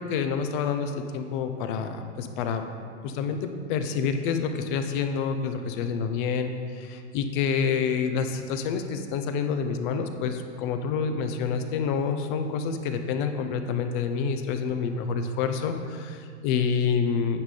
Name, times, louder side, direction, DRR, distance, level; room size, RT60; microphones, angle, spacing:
voice 1, 0.0-2.6 3.0-17.4, left 6 dB, 45° left, 7 dB, 0.8 m, -28 dB
9.4 x 3.7 x 6.9 m, 2.1 s
hypercardioid pair, 120°, 34 cm